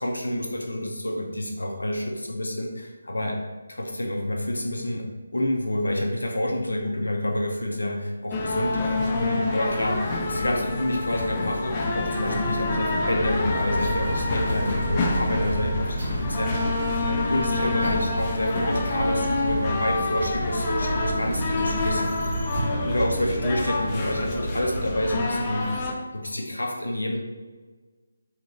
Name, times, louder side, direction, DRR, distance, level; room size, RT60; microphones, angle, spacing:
voice 1, 0.0-3.4 3.7-10.0 10.3-22.4 22.8-27.2, left 1 dB, 85° left, 1 dB, 0.4 m, -28 dB
sound 1, 8.3-25.9, left 2 dB, 25° left, 0.4 m, -27 dB
sound 2, 13.2-25.2, right 1 dB, 60° right, 1.3 m, -31 dB
3.0 x 2.8 x 2.5 m, 1.4 s
figure-of-eight pair, 155°, 0 cm